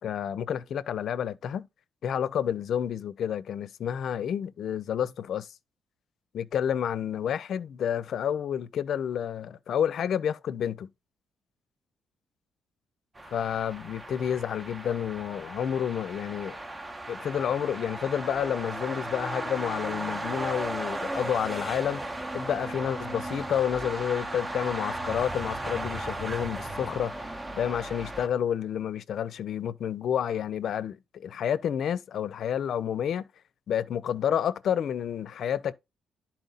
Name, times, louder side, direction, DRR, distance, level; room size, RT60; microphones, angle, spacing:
voice 1, 0.0-1.7 2.0-5.5 6.3-10.9 13.3-16.6 17.1-22.0 22.3-33.2 33.7-35.7, left 9 dB, 65° left, 0.5 m, -30 dB
sound 1, 13.2-28.3, right 1 dB, 20° right, 0.9 m, -36 dB
10.5 x 4.3 x 4.0 m
cardioid pair, 90°, 0 cm